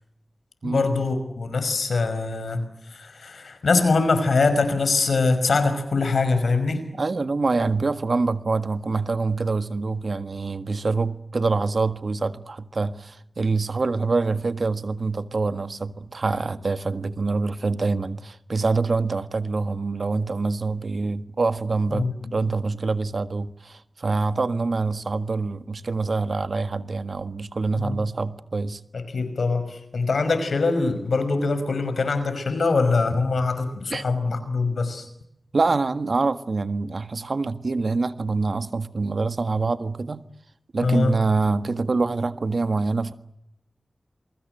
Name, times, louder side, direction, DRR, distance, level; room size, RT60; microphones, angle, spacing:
voice 1, 0.6-6.8 21.9-22.4 27.8-28.0 28.9-35.1 40.8-41.1, left 3 dB, 90° left, 5.4 m, -23 dB
voice 2, 7.0-28.8 33.9-34.0 35.5-40.3 40.7-43.1, right 3 dB, 70° right, 1.6 m, -25 dB
28.5 x 23.5 x 7.9 m
cardioid pair, 45°, 0 cm